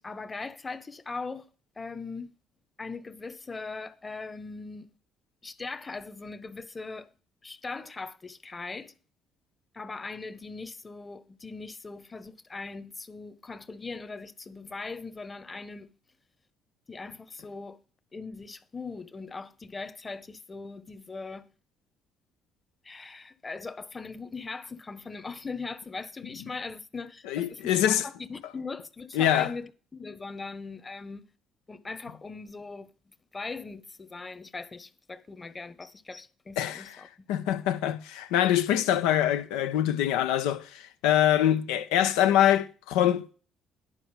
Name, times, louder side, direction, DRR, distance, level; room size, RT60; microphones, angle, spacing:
voice 1, 0.0-1.5 1.8-2.3 2.8-4.9 5.4-7.1 7.4-8.9 9.7-15.9 16.9-17.8 18.1-21.5 22.8-31.3 31.7-37.5, left 4 dB, 30° left, 1.2 m, -40 dB
voice 2, 27.3-28.0 29.1-29.5 36.6-36.8 37.3-43.3, left 11 dB, 85° left, 0.9 m, -24 dB
11.0 x 4.5 x 7.2 m
supercardioid pair, 65°, 0 cm